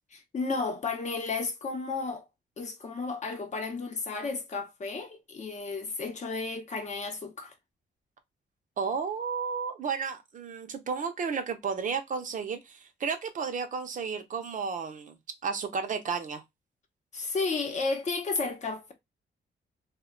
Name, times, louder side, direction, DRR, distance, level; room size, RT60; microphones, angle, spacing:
voice 1, 0.3-2.3 2.6-7.5 17.1-18.9, left 4 dB, 40° left, 0.7 m, -33 dB
voice 2, 8.8-15.2 15.4-16.4, right 5 dB, 50° right, 0.5 m, -32 dB
2.2 x 2.1 x 3.6 m
cardioid pair, 120°, 18 cm